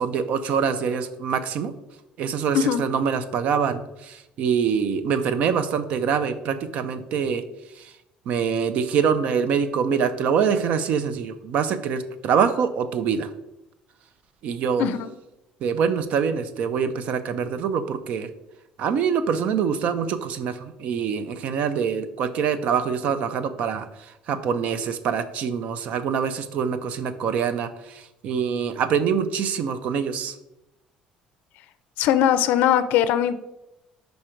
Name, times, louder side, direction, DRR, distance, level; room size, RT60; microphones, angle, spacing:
voice 1, 0.0-1.7 2.2-3.8 4.4-7.4 8.3-13.3 14.4-14.8 15.6-18.3 18.8-20.5 20.8-23.9 24.3-27.7 28.2-30.3, right 7 dB, 50° right, 12 dB, 0.5 m, -24 dB
voice 2, 14.8-15.1 32.0-33.4, left 10 dB, 70° left, 13 dB, 0.4 m, -20 dB
5.3 x 4.9 x 4.4 m, 0.92 s
cardioid pair, 175°, 3 cm